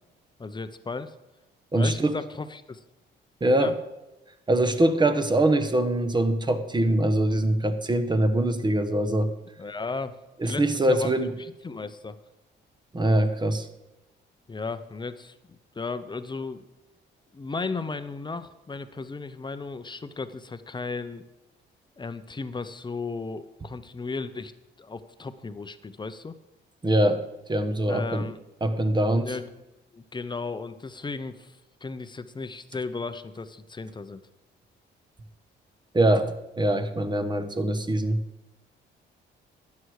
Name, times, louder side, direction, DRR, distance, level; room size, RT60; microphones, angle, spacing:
voice 1, 0.4-1.1 1.7-2.8 3.5-3.7 9.6-10.2 10.4-12.2 14.5-16.7 17.3-21.2 22.0-24.5 24.8-26.3 27.9-28.4 29.0-29.6 29.9-34.2, left 4 dB, 20° left, 11 dB, 0.8 m, -35 dB
voice 2, 1.7-2.1 3.4-3.7 4.5-9.3 10.4-11.3 12.9-13.7 26.8-27.2 27.5-28.2 28.6-29.3 35.9-38.2, right 1 dB, 20° right, 9 dB, 1.1 m, -23 dB
12.5 x 9.6 x 4.8 m, 1.0 s
cardioid pair, 90°, 20 cm